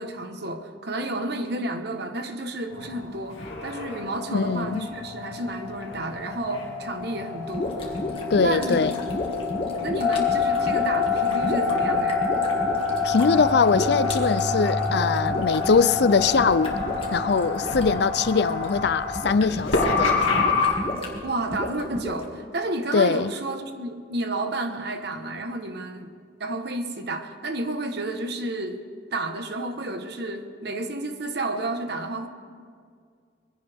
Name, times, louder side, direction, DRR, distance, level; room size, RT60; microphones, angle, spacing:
voice 1, 0.0-8.0 8.4-9.1 9.8-12.2 21.2-26.1 26.4-28.8 29.1-32.3, right 2 dB, 55° right, 1.2 m, -31 dB
sound 1, 2.7-20.7, left 4 dB, 85° left, 2.2 m, -27 dB
voice 2, 4.3-4.9 8.3-8.9 13.0-16.8 17.1-20.2 22.9-23.3, left 5 dB, 55° left, 0.4 m, -22 dB
sound 2, 7.5-22.2, left 1 dB, 30° left, 2.0 m, -33 dB
22.0 x 16.0 x 3.5 m
head